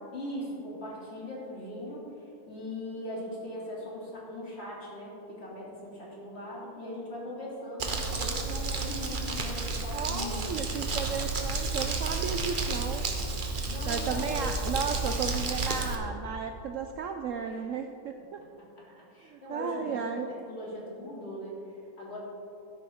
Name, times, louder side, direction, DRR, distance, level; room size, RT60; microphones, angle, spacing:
voice 1, 0.1-10.6 13.7-14.5 17.4-17.7 18.6-22.2, left 1 dB, 40° left, -5 dB, 2.9 m, -40 dB
Crumpling crinkling, 7.8-16.0, right 3 dB, 35° right, 1.0 m, -31 dB
voice 2, 9.9-13.0 13.9-18.4 18.8-19.0 19.3-20.3, right 6 dB, 70° right, 6 dB, 0.8 m, -34 dB
13.0 x 10.0 x 3.6 m, 2.7 s
omnidirectional pair, 1.7 m